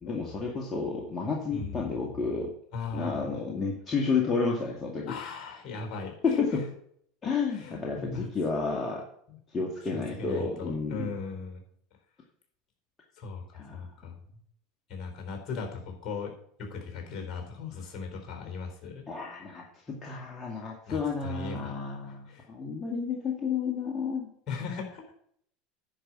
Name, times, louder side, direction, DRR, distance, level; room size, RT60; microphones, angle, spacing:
voice 1, 0.0-2.5 2.9-5.1 6.2-6.7 7.2-9.0 9.5-11.1 13.5-13.8 19.1-24.3, left 4 dB, 25° left, -1 dB, 2.1 m, -31 dB
voice 2, 1.5-1.9 2.7-3.5 5.1-6.4 7.5-8.3 9.3-9.4 9.8-11.6 13.2-14.1 14.9-16.3 16.6-19.0 20.9-21.7 22.3-22.4 24.5-25.1, left 4 dB, 45° left, 3 dB, 4.0 m, -38 dB
10.0 x 5.6 x 7.7 m, 0.67 s
hypercardioid pair, 80°, 0 cm